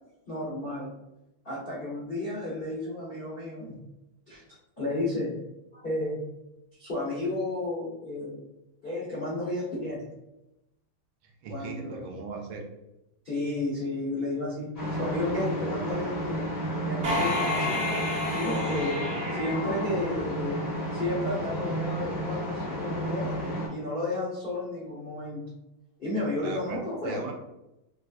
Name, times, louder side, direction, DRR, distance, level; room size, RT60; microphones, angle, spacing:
voice 1, 0.3-0.9 1.4-3.8 4.3-4.4 4.8-5.3 5.7-6.2 6.8-8.4 8.8-10.1 11.5-12.1 13.2-14.7 15.0-16.5 16.8-17.8 18.3-19.0 19.3-20.6 20.9-23.4 23.7-25.4 26.0-27.2, left 2 dB, 80° left, -8 dB, 0.5 m, -32 dB
voice 2, 11.2-12.6 22.1-22.2 26.4-26.8 27.0-27.3, right 4 dB, 80° right, 3 dB, 1.3 m, -38 dB
sound 1, 14.7-23.7, right 1 dB, 35° left, 0.6 m, -32 dB
sound 2, 17.0-20.7, left 2 dB, 45° right, 1.0 m, -31 dB
4.0 x 2.3 x 2.4 m, 0.92 s
omnidirectional pair, 2.3 m